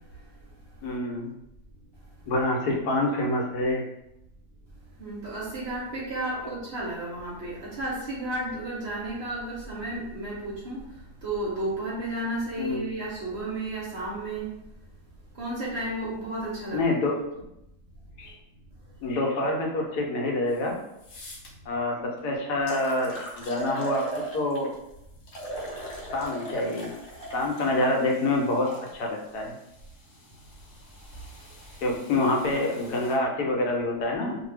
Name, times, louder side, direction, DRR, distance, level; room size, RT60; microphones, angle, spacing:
voice 1, 0.8-1.3 2.3-3.8 12.6-12.9 16.7-17.1 18.2-18.3 19.0-20.8 21.7-24.1 24.3-24.7 26.1-26.9 27.3-29.6 31.8-34.4, left 2 dB, 80° left, 0 dB, 1.2 m, -26 dB
voice 2, 5.0-10.8 11.2-14.5 15.3-16.8, right 1 dB, 55° right, -6 dB, 0.8 m, -32 dB
sound 1, 20.5-20.6 21.0-21.5 22.2-22.3 22.7-24.7 25.3-28.9 29.7-33.1, right 1 dB, 55° left, 0.8 m, -39 dB
2.6 x 2.2 x 3.2 m, 0.86 s
omnidirectional pair, 1.7 m